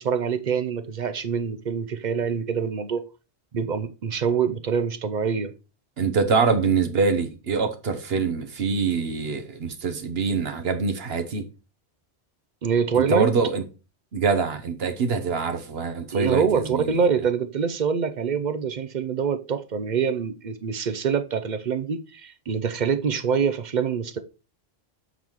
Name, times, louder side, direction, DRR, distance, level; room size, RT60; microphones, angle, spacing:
voice 1, 0.0-3.0 3.5-5.5 12.6-13.3 16.1-24.2, right 6 dB, 50° right, 0.7 m, -25 dB
voice 2, 6.0-11.5 13.0-13.6 14.1-17.0, right 5 dB, 70° right, 1.2 m, -24 dB
7.2 x 4.0 x 4.6 m
omnidirectional pair, 1.1 m